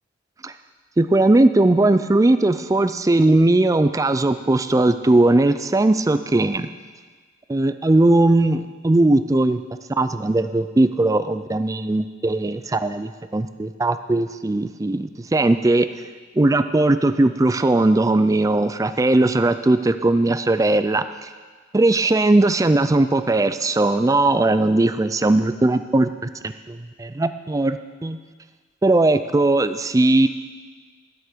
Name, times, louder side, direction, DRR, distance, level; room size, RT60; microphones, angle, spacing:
voice 1, 1.0-6.7 7.5-9.6 10.0-15.9 16.4-21.3 21.7-26.1 26.4-28.2 28.8-30.3, right 2 dB, 15° right, 11 dB, 0.3 m, -19 dB
12.0 x 8.0 x 5.1 m, 1.5 s
head